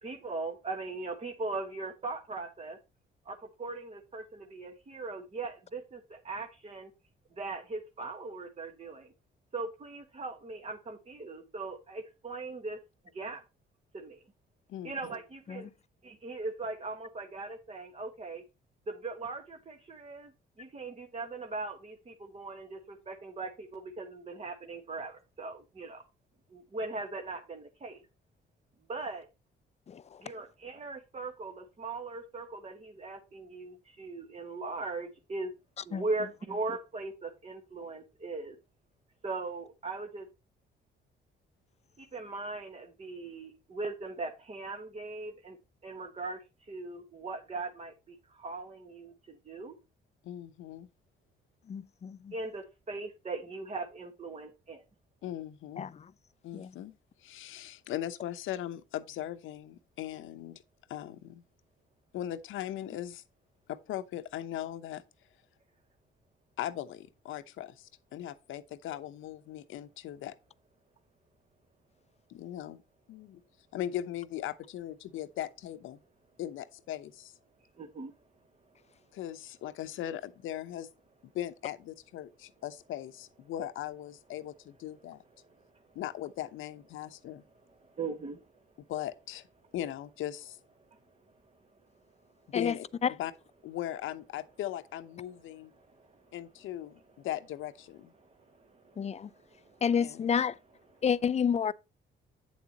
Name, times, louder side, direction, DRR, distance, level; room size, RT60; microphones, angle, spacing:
voice 1, 0.0-2.8 3.2-6.9 7.4-9.1 9.5-12.8 13.1-13.4 13.9-14.2 14.8-15.7 16.0-18.4 18.9-20.3 20.6-26.0 26.5-28.0 28.9-29.3 30.2-35.5 35.8-38.5 39.2-40.3 42.0-45.6 45.8-49.8 52.3-54.8 77.8-78.1 85.5-85.6 87.8-88.4 90.9-91.0 95.8-96.2 98.2-99.8, right 3 dB, 35° right, 1.5 m, -39 dB
voice 2, 29.9-30.2 35.9-36.0 51.7-52.3 55.8-56.0 56.5-56.7 92.5-92.7 93.0-93.1 99.0-99.3 99.8-100.5 101.0-101.7, left 7 dB, 35° left, 0.5 m, -29 dB
voice 3, 50.2-50.9 55.2-55.9 56.4-56.9 57.2-60.6 60.9-61.4 62.1-63.2 63.7-65.0 66.6-70.3 72.3-72.8 73.1-73.4 73.7-76.0 76.4-77.3 79.1-80.9 81.2-85.2 85.9-87.4 88.9-89.5 89.7-90.6 92.5-92.9 93.2-93.3 93.6-95.7 96.3-98.1 100.0-100.3, left 12 dB, 85° left, 0.9 m, -39 dB
8.7 x 7.3 x 2.9 m
cardioid pair, 90°, 20 cm